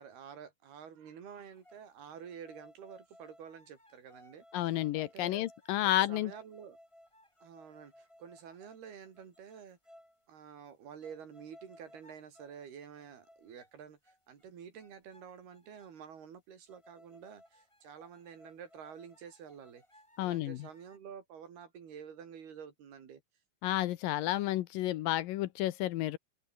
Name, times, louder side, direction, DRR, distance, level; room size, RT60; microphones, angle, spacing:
voice 1, 0.0-5.5 5.8-6.8 7.4-9.8 10.3-19.8 20.2-23.2, right 7 dB, 85° right, 5.5 m, -50 dB
sound 1, 1.4-1.8 2.2-10.3 10.7-10.8 11.0-12.7 12.9-13.8 14.0-14.5 14.8-16.1 16.7-21.0, left 1 dB, 5° left, 7.8 m, -61 dB
voice 2, 4.5-6.3 20.2-20.6 23.6-26.2, left 15 dB, 75° left, 2.4 m, -31 dB
omnidirectional pair, 4.4 m